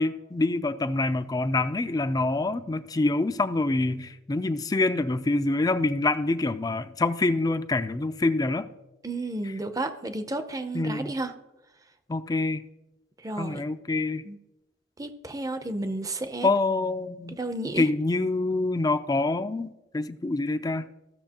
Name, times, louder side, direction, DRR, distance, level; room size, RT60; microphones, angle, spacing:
voice 1, 0.0-8.7 10.7-11.1 12.1-12.6 13.4-14.2 16.4-17.4 17.8-20.9, left 2 dB, 20° left, 0.4 m, -26 dB
voice 2, 9.0-11.3 13.2-13.6 14.2-14.4 15.0-16.5 17.3-17.9, right 2 dB, 20° right, 0.6 m, -32 dB
15.5 x 6.7 x 2.9 m
head